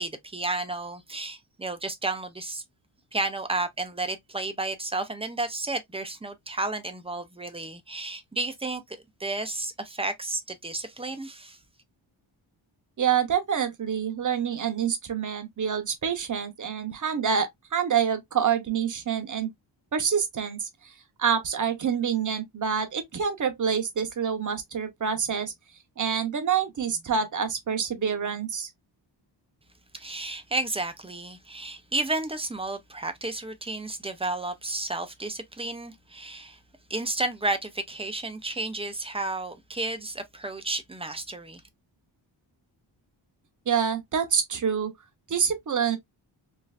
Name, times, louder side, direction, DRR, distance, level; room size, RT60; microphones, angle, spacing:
voice 1, 0.0-2.6 3.1-11.6 29.9-36.6 36.9-41.6, right 2 dB, 15° right, 0.4 m, -32 dB
voice 2, 13.0-19.5 19.9-20.9 21.2-25.5 26.0-28.7 43.7-44.9 45.3-46.0, right 7 dB, 40° right, 0.7 m, -27 dB
3.2 x 2.4 x 2.3 m
wide cardioid pair, 155°, 46 cm